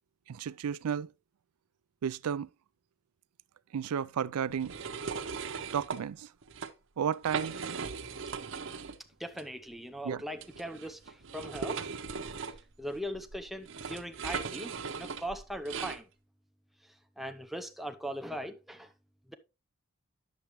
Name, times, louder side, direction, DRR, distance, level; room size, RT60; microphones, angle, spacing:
voice 1, 0.3-1.1 2.0-2.5 3.7-4.7 5.7-6.3 7.0-7.6 10.0-10.2, right 8 dB, 90° right, 0.4 m, -32 dB
sound 1, 4.6-6.0 6.4-6.7 7.1-9.0 9.3-9.4 10.4-16.0, right 5 dB, 60° right, 0.7 m, -38 dB
voice 2, 9.2-11.8 12.8-16.0 17.2-18.9 19.3-19.4, equal, ahead, 0.5 m, -40 dB
9.9 x 6.9 x 3.0 m
head